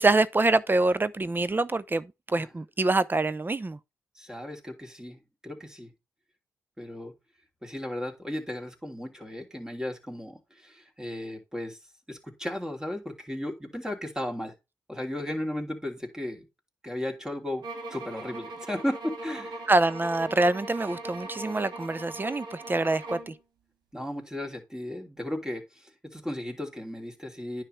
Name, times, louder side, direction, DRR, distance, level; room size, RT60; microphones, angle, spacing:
voice 1, 0.0-3.8 19.7-23.3, right 2 dB, 25° right, 0.6 m, -25 dB
voice 2, 4.1-5.9 6.8-7.1 7.6-11.8 12.1-14.5 14.9-16.5 16.8-17.6 17.9-19.7 23.9-27.6, left 1 dB, 10° right, 3.0 m, -35 dB
sound 1, 17.6-23.4, right 2 dB, 70° right, 2.1 m, -40 dB
9.8 x 5.8 x 3.2 m
supercardioid pair, 45°, 8 cm